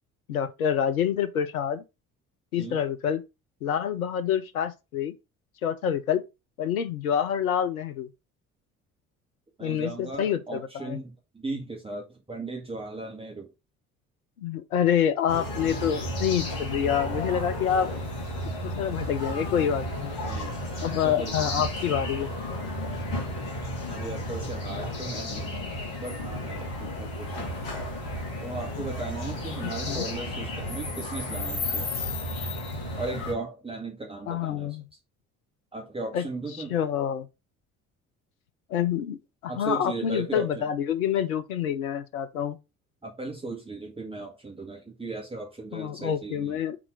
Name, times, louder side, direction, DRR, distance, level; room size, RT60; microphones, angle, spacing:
voice 1, 0.3-1.8 2.5-3.2 3.6-5.1 5.6-6.2 6.6-8.1 9.6-11.0 14.4-17.9 18.6-20.4 20.8-22.3 29.6-30.1 34.3-34.8 36.1-36.2 36.7-37.3 38.7-42.6 45.7-46.8, left 9 dB, 80° left, 0.7 m, -27 dB
voice 2, 9.6-13.5 20.3-21.7 23.9-25.6 26.0-27.6 28.4-31.9 33.0-34.8 35.7-36.8 39.5-40.6 43.0-46.6, right 2 dB, 15° right, 1.8 m, -37 dB
sound 1, 15.3-33.3, left 1 dB, 60° left, 2.7 m, -33 dB
4.8 x 4.2 x 5.3 m
figure-of-eight pair, 50°, 42 cm